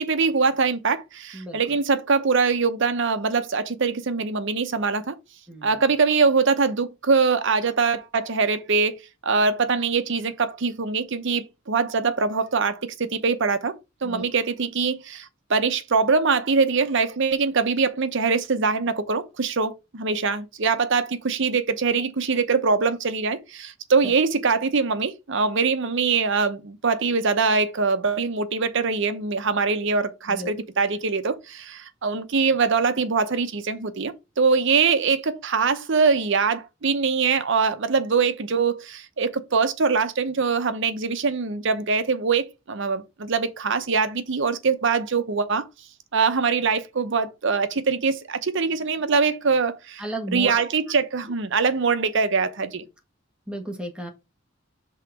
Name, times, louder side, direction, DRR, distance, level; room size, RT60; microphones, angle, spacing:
voice 1, 0.0-5.2 5.6-8.9 9.2-13.7 14.0-45.7 46.1-52.8, right 5 dB, 65° right, 0.8 m, -23 dB
voice 2, 5.5-5.8 14.0-14.2 30.3-30.5 50.0-50.6 53.5-54.1, right 1 dB, 5° right, 1.4 m, -33 dB
5.7 x 3.8 x 4.5 m
head